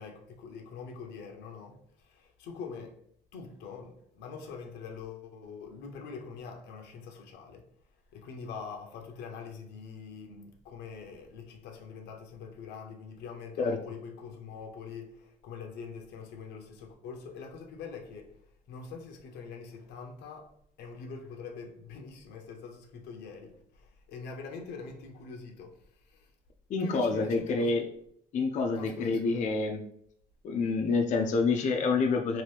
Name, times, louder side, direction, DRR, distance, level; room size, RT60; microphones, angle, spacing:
voice 1, 0.0-2.9 3.3-7.6 8.1-18.3 18.7-20.5 20.8-25.8 26.1-26.3 26.8-27.9 28.7-29.4, left 5 dB, 85° left, 2 dB, 0.7 m, -44 dB
voice 2, 26.7-27.8 28.3-29.8 30.4-32.4, left 4 dB, 45° left, 3 dB, 0.4 m, -27 dB
2.8 x 2.6 x 3.3 m, 0.67 s
cardioid pair, 110°, 17 cm